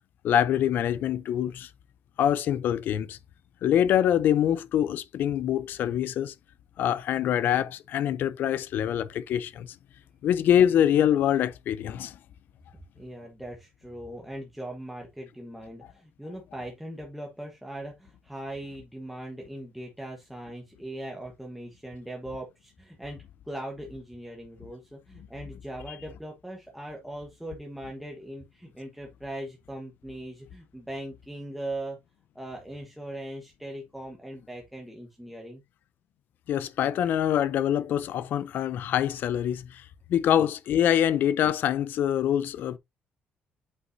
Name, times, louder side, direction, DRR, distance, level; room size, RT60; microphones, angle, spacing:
voice 1, 0.2-1.7 2.2-3.2 3.6-6.3 6.8-9.7 10.2-12.1 36.5-39.8 40.1-42.8, left 10 dB, 60° left, 0.5 m, -25 dB
voice 2, 13.0-32.0 32.3-35.6, right 1 dB, ahead, 1.2 m, -40 dB
8.1 x 5.3 x 2.6 m
cardioid pair, 170°, 4 cm